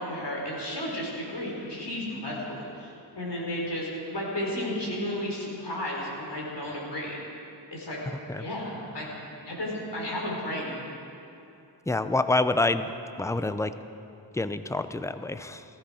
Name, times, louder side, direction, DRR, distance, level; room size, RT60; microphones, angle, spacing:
voice 1, 0.0-7.2 7.7-8.0 8.4-10.8, left 1 dB, 65° left, -3 dB, 4.3 m, -33 dB
voice 2, 11.9-12.9 13.2-13.7 14.3-15.6, left 2 dB, 5° left, 11 dB, 0.6 m, -27 dB
15.5 x 15.0 x 4.9 m, 2.8 s
cardioid pair, 50°, 45 cm